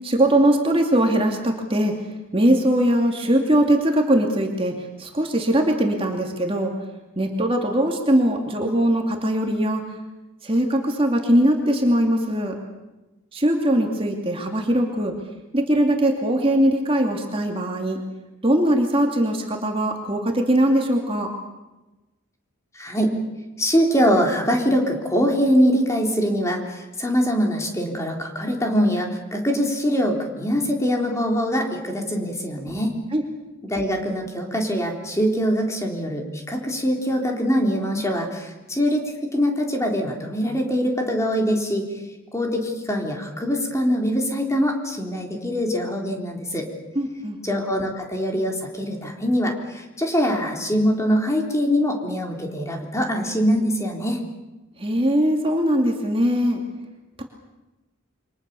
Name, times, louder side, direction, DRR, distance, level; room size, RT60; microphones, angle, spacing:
voice 1, 0.0-1.9 2.3-4.7 5.0-6.7 7.2-9.8 10.4-12.5 13.3-15.1 15.5-18.0 18.4-21.3 32.7-32.8 33.1-33.2 46.9-47.4 54.8-56.6, right 1 dB, 25° right, 2 dB, 2.6 m, -21 dB
voice 2, 22.8-23.1 23.6-32.9 33.7-41.9 42.3-46.7 47.4-54.2, equal, 15° left, 1 dB, 3.8 m, -23 dB
28.5 x 24.5 x 7.0 m, 1.1 s
head